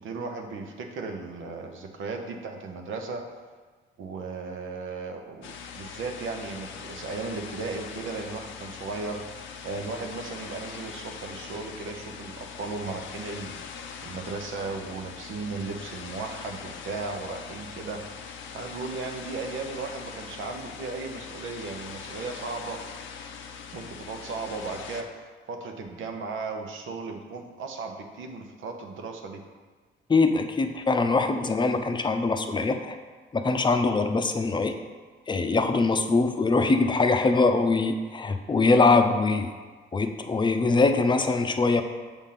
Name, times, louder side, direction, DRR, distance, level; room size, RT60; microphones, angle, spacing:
voice 1, 0.0-3.3 4.0-9.2 9.6-13.6 14.0-22.8 23.7-29.4, right 4 dB, 80° right, 3 dB, 0.9 m, -36 dB
sound 1, 5.4-25.0, left 6 dB, 80° left, 0.6 m, -42 dB
voice 2, 30.1-33.0 33.3-34.7 35.3-39.5 39.9-41.8, left 3 dB, 25° left, 7 dB, 0.6 m, -23 dB
7.1 x 3.6 x 5.8 m, 1.4 s
cardioid pair, 90°, 20 cm